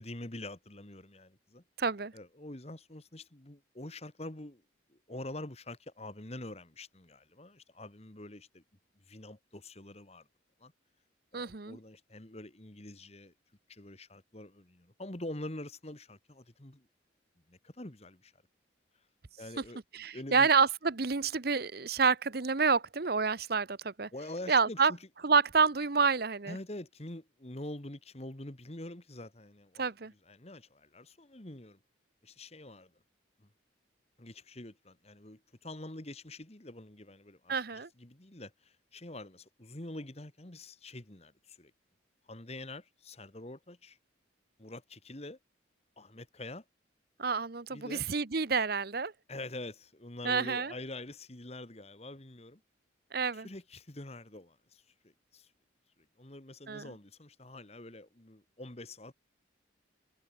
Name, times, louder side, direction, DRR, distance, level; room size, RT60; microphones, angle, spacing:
voice 1, 0.0-1.6 2.1-4.6 4.9-8.6 9.1-10.3 10.6-10.7 11.3-13.3 13.7-16.9 17.5-18.3 19.4-20.5 24.1-25.0 26.5-29.9 30.3-31.8 32.2-32.9 33.4-33.5 34.2-41.7 42.3-44.0 44.6-45.4 46.0-46.6 47.7-48.1 49.3-52.6 53.3-55.5 56.2-59.1, left 1 dB, 35° left, 1.8 m, -45 dB
voice 2, 1.8-2.1 11.3-11.8 19.9-24.1 24.5-24.9 25.2-26.6 29.8-30.1 37.5-37.9 47.2-49.1 50.2-50.7 53.1-53.5 56.7-56.9, right 5 dB, 50° right, 0.9 m, -28 dB
head